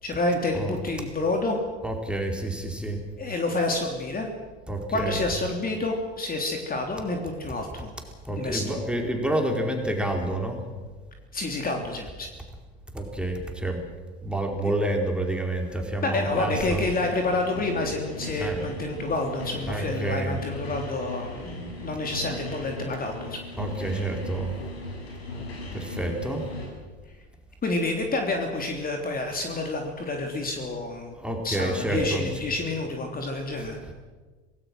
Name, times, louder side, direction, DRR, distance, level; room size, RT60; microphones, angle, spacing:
voice 1, 0.0-1.6 3.2-4.3 4.9-7.9 8.4-8.8 11.3-12.3 16.0-23.4 27.6-31.1 31.4-33.8, left 2 dB, 30° left, 3 dB, 3.3 m, -28 dB
voice 2, 1.8-3.0 4.7-5.2 8.2-10.6 12.9-13.8 14.2-16.8 18.4-18.6 19.7-20.4 23.6-24.6 25.7-26.5 31.1-32.3, right 1 dB, 5° right, 2 dB, 4.5 m, -28 dB
sound 1, 16.2-26.7, left 2 dB, 75° left, 6.8 m, -38 dB
26.5 x 18.5 x 6.3 m, 1.4 s
figure-of-eight pair, 70°, 31 cm